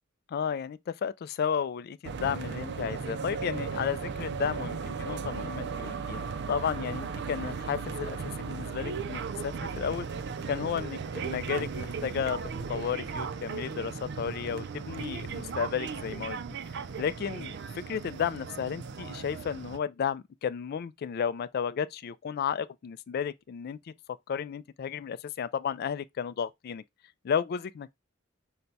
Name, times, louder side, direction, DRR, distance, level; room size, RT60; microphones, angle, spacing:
voice 1, 0.3-10.1 10.5-16.4 17.0-23.9 24.3-26.8 27.2-27.9, left 7 dB, 50° left, 0.3 m, -33 dB
sound 1, 2.0-19.8, right 5 dB, 60° right, 0.4 m, -36 dB
5.7 x 2.2 x 3.9 m
head